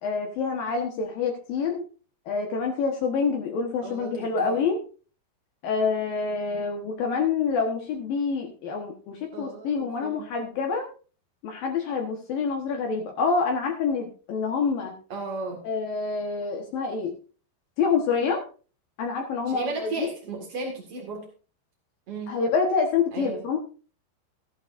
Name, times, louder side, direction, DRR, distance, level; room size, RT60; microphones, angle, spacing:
voice 1, 0.0-1.8 2.3-4.8 5.6-10.9 11.4-14.9 15.6-17.2 17.8-18.4 19.0-19.7 20.0-20.1 22.3-23.6, left 5 dB, 70° left, 2 dB, 2.2 m, -27 dB
voice 2, 3.8-4.6 9.3-10.3 15.1-15.6 19.5-21.3 22.1-22.3 23.1-23.4, right 3 dB, 65° right, 0 dB, 1.4 m, -35 dB
14.5 x 11.5 x 2.6 m, 0.37 s
omnidirectional pair, 6.0 m